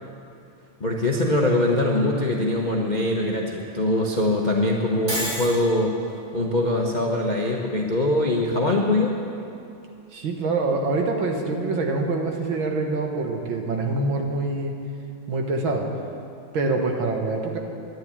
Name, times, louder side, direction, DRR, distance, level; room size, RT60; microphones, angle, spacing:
voice 1, 0.8-5.9 6.3-9.1, left 1 dB, 35° left, -1 dB, 0.7 m, -22 dB
Shatter, 5.1-5.6, equal, 45° right, 4.0 m, -28 dB
voice 2, 10.1-14.7 15.3-15.9 16.5-17.6, right 3 dB, 65° right, 2 dB, 2.1 m, -25 dB
11.0 x 10.5 x 9.8 m, 2.6 s
omnidirectional pair, 2.4 m